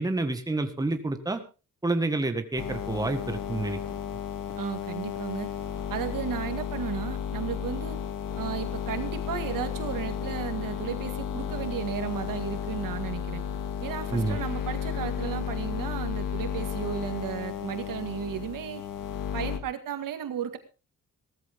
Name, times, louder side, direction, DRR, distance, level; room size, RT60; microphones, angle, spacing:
voice 1, 0.0-1.4 1.8-4.0 14.1-14.4, right 2 dB, 10° right, 7 dB, 1.6 m, -29 dB
sound 1, 2.6-19.6, left 8 dB, 85° left, 2.0 m, -33 dB
voice 2, 4.6-5.5 5.9-8.0 8.4-13.4 13.8-18.8 19.3-20.6, right 9 dB, 85° right, 8 dB, 2.1 m, -34 dB
17.5 x 14.0 x 3.6 m, 0.32 s
cardioid pair, 130°, 32 cm